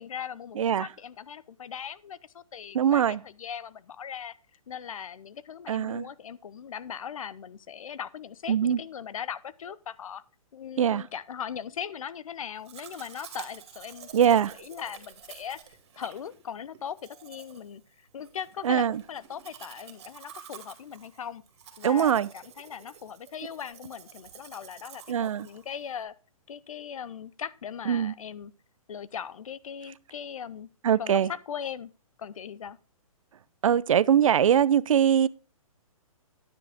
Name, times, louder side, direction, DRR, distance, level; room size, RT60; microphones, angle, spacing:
voice 1, 0.0-4.3 4.7-10.2 10.5-14.2 14.6-21.4 21.8-26.1 26.5-28.5 28.9-30.7 31.0-31.9 32.2-32.8, left 8 dB, 65° left, 0.8 m, -39 dB
voice 2, 0.6-0.9 2.7-3.2 5.7-6.1 8.5-8.8 10.8-11.1 14.1-14.5 18.6-19.0 21.8-22.3 25.1-25.5 27.9-28.1 30.8-31.3 33.6-35.3, right 9 dB, 65° right, 0.5 m, -22 dB
Domestic sounds home sounds, 12.6-26.0, right 8 dB, 45° right, 2.4 m, -49 dB
9.8 x 9.6 x 3.5 m
hypercardioid pair, 170°, 19 cm